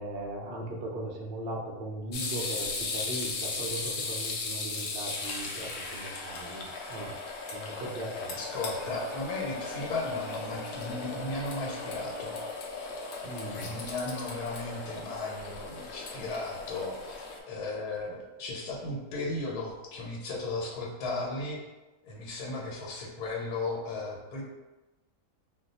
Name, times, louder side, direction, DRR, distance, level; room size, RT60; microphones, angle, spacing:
voice 1, 0.0-7.2 7.5-8.3 13.2-13.7, right 1 dB, 70° right, -2 dB, 0.5 m, -38 dB
sound 1, 2.1-17.4, left 3 dB, 70° left, 0.6 m, -37 dB
voice 2, 8.2-12.4 13.5-21.6 22.0-24.4, left 2 dB, 85° left, -2 dB, 1.2 m, -36 dB
Wind instrument woodwind instrument, 8.2-12.6, right 3 dB, 90° right, 1.2 m, -49 dB
2.6 x 2.1 x 4.0 m, 1.1 s
omnidirectional pair, 1.6 m